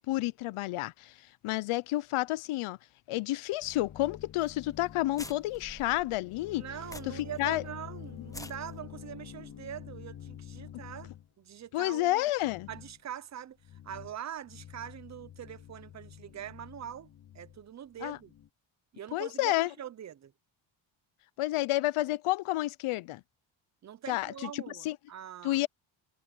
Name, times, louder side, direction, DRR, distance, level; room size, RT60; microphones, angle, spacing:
voice 1, 0.1-1.1 1.4-2.8 3.1-6.6 7.1-7.6 11.7-12.7 18.0-18.2 19.1-19.7 21.4-23.2 24.1-25.0 25.4-25.7, left 17 dB, 85° left, 0.7 m, -30 dB
sound 1, 3.6-11.3 12.4-13.0 13.6-14.2 14.4-18.5, left 10 dB, 40° left, 1.0 m, -48 dB
sound 2, 4.4-4.5 4.8-4.9 5.2-7.4 7.7-7.8 8.2-8.5, left 2 dB, 5° left, 0.9 m, -46 dB
voice 2, 6.6-11.1 11.4-12.2 12.7-13.6 13.8-17.1 17.3-18.3 18.9-20.3 23.8-25.6, right 10 dB, 35° right, 0.7 m, -43 dB
cardioid pair, 145°, 48 cm